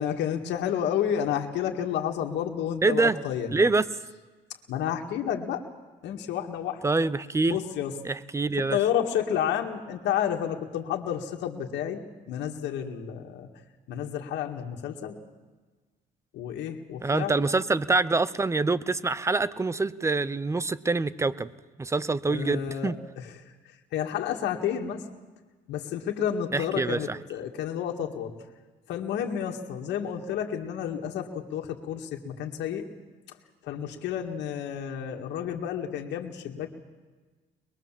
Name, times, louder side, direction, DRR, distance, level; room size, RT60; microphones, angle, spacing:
voice 1, 0.0-3.6 4.7-5.6 6.0-6.8 7.5-8.0 8.7-12.0 12.3-13.5 13.9-15.2 16.3-17.3 22.3-25.0 25.7-28.3 28.9-32.8 33.6-36.7, left 9 dB, 80° left, 2 dB, 2.0 m, -30 dB
voice 2, 2.8-3.2 3.5-3.9 6.8-7.6 8.0-8.8 17.0-21.5 21.8-23.0 26.5-27.2, right 3 dB, 15° right, 17 dB, 0.8 m, -25 dB
23.0 x 21.0 x 7.5 m, 1.3 s
cardioid pair, 110°, 18 cm